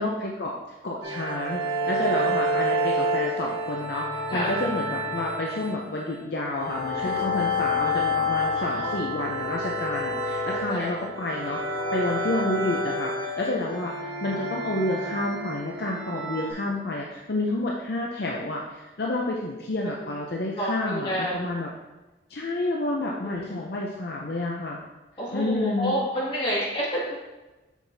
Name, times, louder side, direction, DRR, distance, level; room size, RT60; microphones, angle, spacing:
voice 1, 0.0-21.7 22.3-24.8 25.3-25.9, left 2 dB, 55° left, -2 dB, 0.6 m, -30 dB
sound 1, 1.0-16.5, equal, 90° right, 1.3 m, -29 dB
voice 2, 6.9-7.3 8.4-9.0 10.5-10.9 19.8-19.9 20.5-21.5 23.2-23.6 25.2-27.2, equal, 25° left, -7 dB, 2.1 m, -30 dB
7.2 x 5.6 x 2.7 m, 1.1 s
head